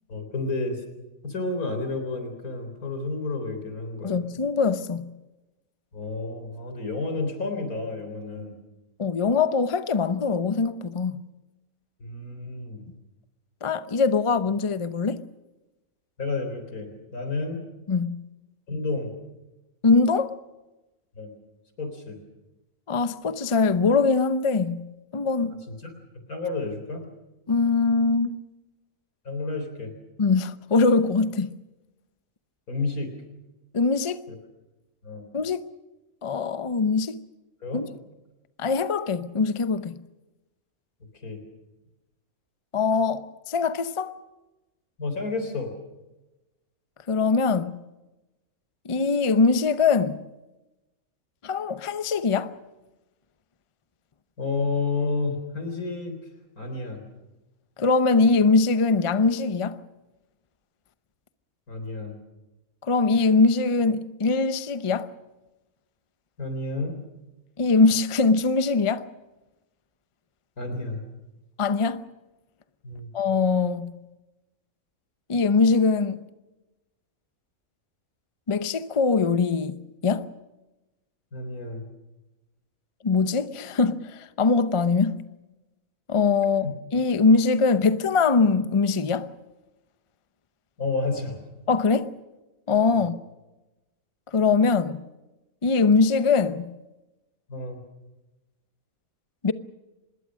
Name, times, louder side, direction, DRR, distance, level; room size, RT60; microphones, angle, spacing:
voice 1, 0.1-0.8 1.2-4.2 5.9-8.6 12.0-12.9 16.2-17.6 18.7-19.1 21.2-21.3 21.8-22.2 25.7-25.9 26.3-27.0 29.2-29.9 32.7-33.1 34.3-34.4 35.0-35.3 37.6-37.8 41.2-41.4 45.0-45.7 54.4-56.2 56.6-57.0 61.7-62.1 66.4-67.0 70.6-71.0 72.8-73.1 81.3-81.8 90.8-91.4 93.0-93.1 97.5-97.8, left 3 dB, 90° left, 4.3 m, -30 dB
voice 2, 4.0-5.1 9.0-11.2 13.6-15.3 17.9-18.2 19.8-20.3 22.9-25.6 27.5-28.4 30.2-31.5 33.7-34.3 35.3-35.7 36.2-37.2 37.7-37.9 38.6-40.0 42.7-44.1 47.1-47.8 48.8-50.2 51.4-52.5 57.8-59.8 62.8-65.1 67.6-69.0 71.6-72.0 73.1-74.0 75.3-76.2 78.5-80.3 83.0-85.2 86.1-86.7 86.9-89.3 91.7-92.1 92.7-93.2 94.3-95.0 95.6-96.7 99.4-99.5, left 4 dB, 30° left, 0.7 m, -22 dB
26.0 x 20.5 x 6.4 m
omnidirectional pair, 1.5 m